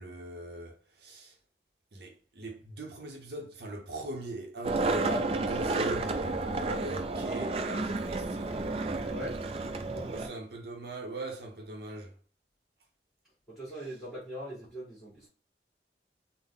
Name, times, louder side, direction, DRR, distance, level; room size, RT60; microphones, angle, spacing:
voice 1, 0.0-1.4 1.9-6.3 6.8-8.8 9.9-12.2, right 1 dB, 65° right, 0.7 m, -41 dB
Skateboard, 4.6-10.3, right 3 dB, 35° right, 0.3 m, -31 dB
voice 2, 9.0-10.2 13.5-15.3, equal, ahead, 1.4 m, -42 dB
3.6 x 2.0 x 3.6 m
head